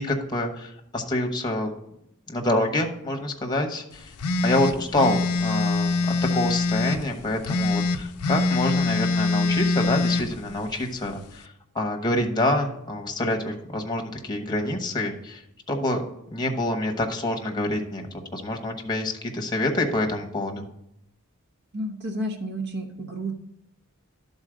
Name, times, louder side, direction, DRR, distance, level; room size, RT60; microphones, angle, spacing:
voice 1, 0.0-1.7 2.3-4.1 4.4-11.5 11.7-15.4 15.7-16.0 16.3-20.7, left 1 dB, 20° left, 2 dB, 1.0 m, -27 dB
sound 1, 4.2-7.0 7.4-10.2, left 3 dB, 80° left, 0.5 m, -24 dB
voice 2, 21.7-23.3, right 1 dB, 50° right, 4 dB, 1.2 m, -31 dB
11.5 x 4.1 x 5.0 m, 0.79 s
head